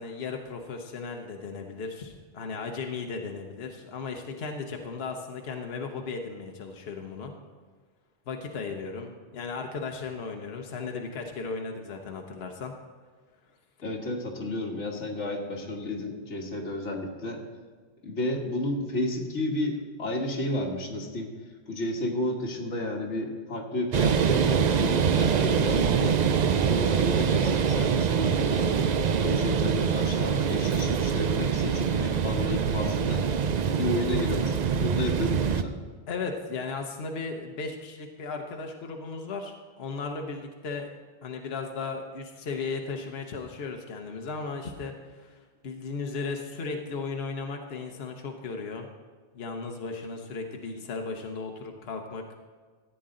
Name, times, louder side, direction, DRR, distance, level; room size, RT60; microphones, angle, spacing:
voice 1, 0.0-7.3 8.3-12.7 36.1-40.9 41.2-45.4 45.6-48.9 49.3-52.2, left 4 dB, 60° left, 3 dB, 1.1 m, -36 dB
voice 2, 13.8-17.4 18.0-21.3 21.7-26.2 26.6-28.7 29.2-33.3 33.8-35.8, left 1 dB, 90° left, 1 dB, 1.8 m, -32 dB
sound 1, 23.9-35.6, right 7 dB, 55° right, 0.5 m, -24 dB
14.0 x 9.2 x 3.8 m, 1.5 s
omnidirectional pair, 1.2 m